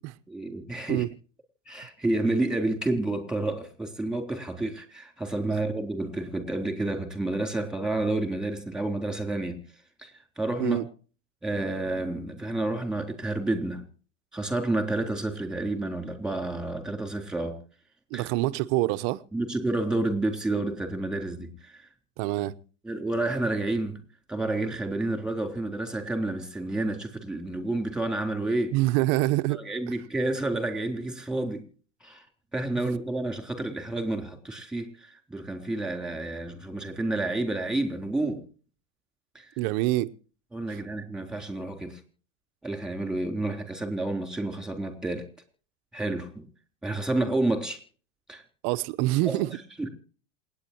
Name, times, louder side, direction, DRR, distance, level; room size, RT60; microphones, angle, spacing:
voice 1, 0.3-1.0 1.7-9.6 10.0-10.1 10.4-10.8 11.4-13.8 14.3-17.6 18.1-18.3 19.3-21.9 22.8-24.0 24.3-28.8 29.5-31.7 32.0-32.2 32.5-38.4 39.4-39.5 40.5-42.0 42.6-45.3 45.9-46.5 46.8-47.8 48.3-48.4 49.3-49.4 49.8-49.9, right 2 dB, ahead, 3.7 m, -30 dB
voice 2, 18.1-19.2 22.2-22.6 28.7-29.6 39.6-40.1 48.6-49.5, right 18 dB, 50° right, 1.0 m, -25 dB
27.5 x 9.6 x 3.0 m
hypercardioid pair, 100°, 36 cm